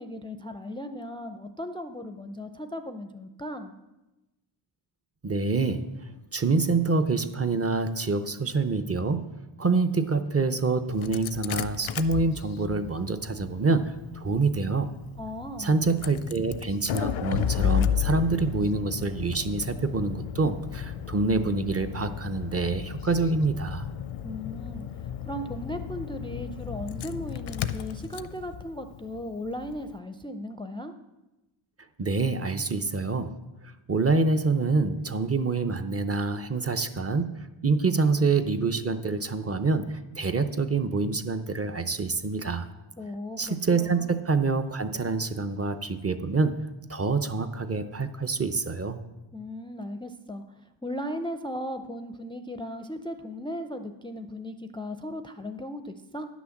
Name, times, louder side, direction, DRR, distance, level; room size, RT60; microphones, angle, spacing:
voice 1, 0.0-3.7 15.2-15.7 24.2-30.9 43.0-44.1 49.3-50.4 50.8-56.3, left 1 dB, 10° left, 7 dB, 0.4 m, -37 dB
voice 2, 5.2-5.9 6.3-9.2 9.6-14.9 15.6-23.9 32.0-33.3 33.9-37.3 37.6-42.7 43.4-46.6 46.9-49.0, right 3 dB, 30° right, 8 dB, 0.7 m, -26 dB
Engine starting, 10.9-29.9, left 10 dB, 85° left, 0.6 m, -34 dB
10.5 x 6.2 x 7.1 m, 1.0 s
wide cardioid pair, 115°, 48 cm